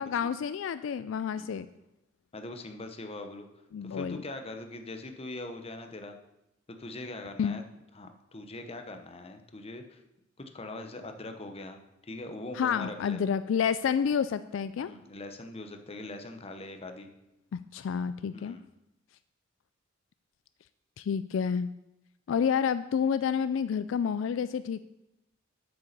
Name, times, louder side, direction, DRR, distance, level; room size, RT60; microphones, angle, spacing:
voice 1, 0.0-1.7 3.7-4.2 7.4-7.6 12.5-14.9 17.5-18.6 21.0-21.7 22.3-24.8, left 7 dB, 70° left, 13 dB, 0.3 m, -29 dB
voice 2, 2.3-3.5 3.8-6.2 6.7-7.6 7.9-10.0 10.5-13.2 14.8-17.1 18.3-18.7, left 2 dB, 30° left, 6 dB, 0.9 m, -42 dB
8.3 x 6.9 x 6.6 m, 0.90 s
head